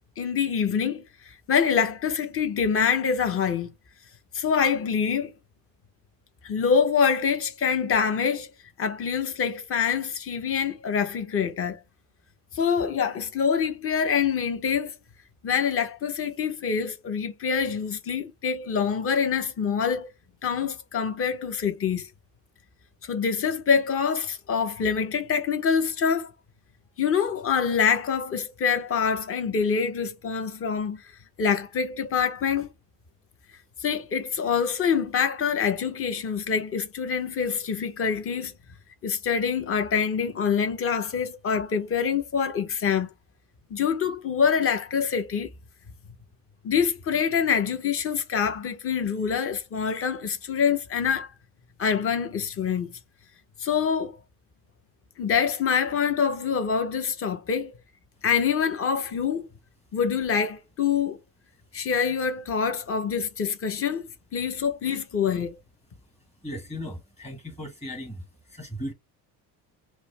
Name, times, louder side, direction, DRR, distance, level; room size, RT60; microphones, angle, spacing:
voice 1, 0.2-1.0 1.5-3.7 4.3-5.3 6.4-8.5 8.8-11.8 12.5-14.9 15.4-20.1 20.4-22.1 23.0-26.3 27.0-31.0 31.4-32.7 33.8-38.5 39.0-43.1 43.7-45.5 46.6-51.3 51.8-52.9 53.6-54.2 55.2-57.7 58.2-59.5 59.9-61.2 61.7-64.1 64.3-65.6, left 6 dB, 35° left, 1.0 m, -25 dB
voice 2, 66.4-68.2 68.5-68.9, equal, 15° left, 1.6 m, -36 dB
5.9 x 2.2 x 3.4 m
supercardioid pair, 100°, 39 cm